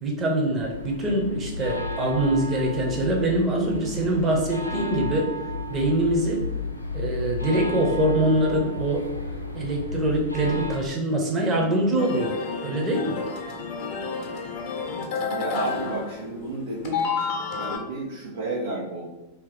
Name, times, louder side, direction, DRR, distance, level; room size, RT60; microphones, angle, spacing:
voice 1, 0.0-5.3 5.7-6.4 6.9-9.1 9.5-12.4 12.6-13.2, right 1 dB, 25° right, 0 dB, 0.9 m, -24 dB
sound 1, 0.6-10.8, left 2 dB, 85° left, 0.4 m, -33 dB
sound 2, 12.0-16.6 16.8-17.8, left 5 dB, 45° left, 0.8 m, -30 dB
voice 2, 15.3-19.0, right 2 dB, 65° right, -4 dB, 0.6 m, -32 dB
2.9 x 2.9 x 3.9 m, 1.0 s
figure-of-eight pair, 90°, 0 cm